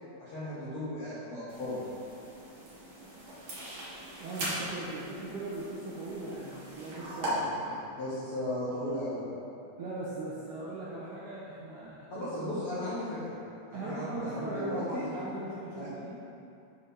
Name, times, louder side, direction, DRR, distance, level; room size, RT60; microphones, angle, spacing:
voice 1, 0.2-1.9 7.2-7.4 7.6-9.3 12.1-13.3 13.7-15.1 15.7-15.9, left 1 dB, 60° left, -12 dB, 1.5 m, -36 dB
sound 1, 1.5-7.3, right 1 dB, 60° right, 1.4 m, -41 dB
voice 2, 4.2-7.7 9.8-12.5 13.7-16.2, right 2 dB, 80° right, -6 dB, 1.9 m, -39 dB
7.6 x 3.2 x 5.6 m, 2.5 s
omnidirectional pair, 4.4 m